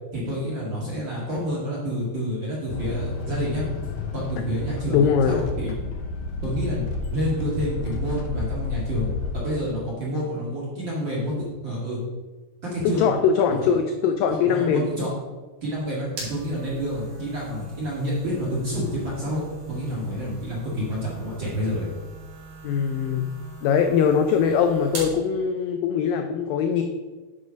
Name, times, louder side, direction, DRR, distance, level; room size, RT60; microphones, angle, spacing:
voice 1, 0.1-3.6 4.1-5.7 6.4-6.8 7.1-11.3 11.6-12.0 12.6-13.1 13.5-13.7 14.3-15.1 15.6-19.4 19.7-21.9, equal, 40° right, -6 dB, 1.9 m, -28 dB
sound 1, 2.7-9.5, left 3 dB, 70° left, 2.0 m, -31 dB
voice 2, 4.9-5.4 12.8-14.9 22.6-23.3 23.6-26.8, left 7 dB, 90° left, 6 dB, 1.9 m, -21 dB
sound 2, 15.6-25.2, right 2 dB, 55° right, 4.0 m, -41 dB
10.0 x 5.5 x 5.2 m, 1.3 s
omnidirectional pair, 4.7 m